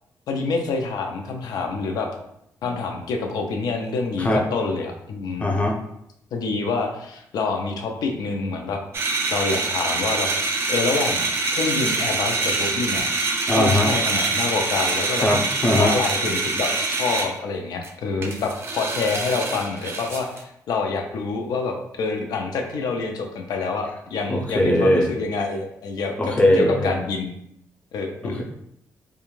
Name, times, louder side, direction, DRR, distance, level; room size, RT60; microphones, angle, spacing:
voice 1, 0.3-2.1 2.6-5.5 6.3-8.8 9.3-10.3 10.7-11.2 11.5-13.1 13.6-15.3 15.8-27.3 27.9-28.4, left 4 dB, 75° left, 3 dB, 0.5 m, -27 dB
voice 2, 5.4-5.8 13.5-13.9 15.2-15.9 24.3-25.1 26.2-27.0 28.2-28.4, left 1 dB, 20° left, 1 dB, 0.5 m, -20 dB
sound 1, 8.9-17.3 17.8-17.9 18.2-20.4, right 3 dB, 40° right, 0.4 m, -25 dB
2.5 x 2.3 x 3.1 m, 0.76 s
cardioid pair, 130°, 7 cm